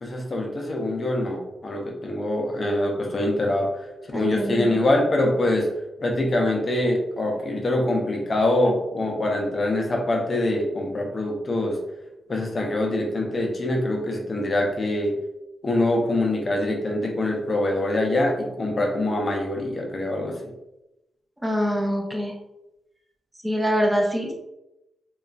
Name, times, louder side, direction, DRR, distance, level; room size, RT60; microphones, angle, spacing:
voice 1, 0.0-5.7 6.0-11.8 12.3-15.2 15.6-20.5, left 1 dB, 45° left, 0 dB, 0.6 m, -24 dB
voice 2, 4.1-4.8 21.4-22.3 23.4-24.3, equal, 10° right, 0 dB, 0.7 m, -24 dB
3.0 x 2.3 x 2.3 m, 0.92 s
cardioid pair, 60°, 0 cm